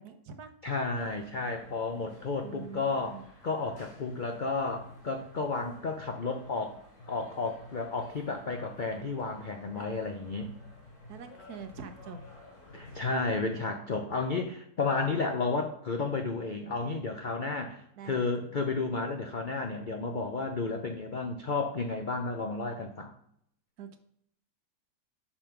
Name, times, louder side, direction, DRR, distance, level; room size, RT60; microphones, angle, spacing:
voice 1, 0.0-0.5 2.4-3.3 9.7-9.8 11.1-12.2 18.0-18.3 23.8-24.0, right 6 dB, 70° right, 8 dB, 1.3 m, -45 dB
voice 2, 0.6-3.2 3.4-6.8 7.1-10.5 12.7-23.1, left 3 dB, 60° left, 4 dB, 0.5 m, -32 dB
sound 1, 0.9-13.2, left 2 dB, 80° left, 3.5 m, -52 dB
7.1 x 5.1 x 5.8 m, 0.71 s
omnidirectional pair, 1.8 m